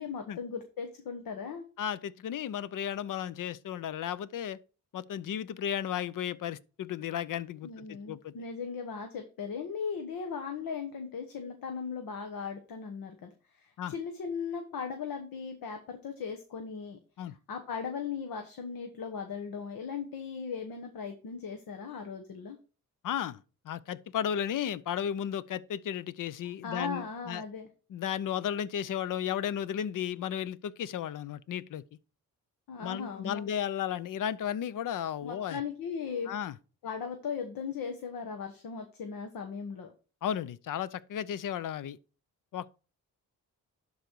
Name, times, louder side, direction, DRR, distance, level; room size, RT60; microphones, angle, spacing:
voice 1, 0.0-1.6 7.6-22.6 26.6-27.7 32.7-33.4 35.2-36.3 36.8-39.9, left 6 dB, 80° left, 1.1 m, -38 dB
voice 2, 1.8-4.6 4.9-8.3 13.8-13.9 17.2-17.4 23.0-23.4 23.6-27.4 27.9-31.8 32.8-35.6 36.3-36.5 40.2-42.0 42.5-42.7, left 9 dB, 65° left, 0.6 m, -34 dB
11.5 x 4.1 x 4.6 m
cardioid pair, 75°, 34 cm